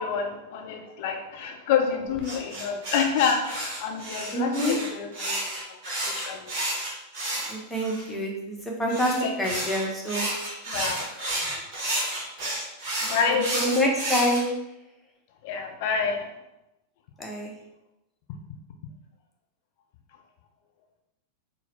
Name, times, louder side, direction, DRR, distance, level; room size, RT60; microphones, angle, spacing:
voice 1, 0.0-5.4 6.1-6.5 9.2-9.4 10.7-11.0 11.4-11.6 13.0-13.5 15.4-16.3, left 6 dB, 50° left, 3 dB, 0.5 m, -28 dB
sound 1, 2.2-8.1 8.9-14.4, right 1 dB, 45° right, 1.2 m, -31 dB
voice 2, 4.3-4.8 7.5-10.2 11.0-11.1 13.3-14.5 17.2-17.5, equal, 5° left, -2 dB, 0.8 m, -27 dB
4.0 x 2.0 x 4.0 m, 0.91 s
figure-of-eight pair, 90°, 0 cm